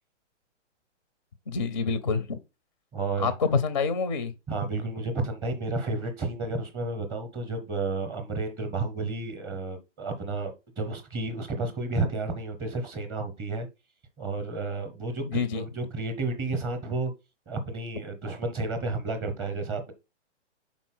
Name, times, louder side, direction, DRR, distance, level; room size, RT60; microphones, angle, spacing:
voice 1, 1.5-2.4 3.2-4.3 15.2-15.6, left 5 dB, 30° left, 0.4 m, -27 dB
voice 2, 2.9-3.3 4.5-13.7 14.2-17.1 17.5-19.9, right 3 dB, 10° right, 0.7 m, -31 dB
5.3 x 4.1 x 5.9 m
hypercardioid pair, 165°, 36 cm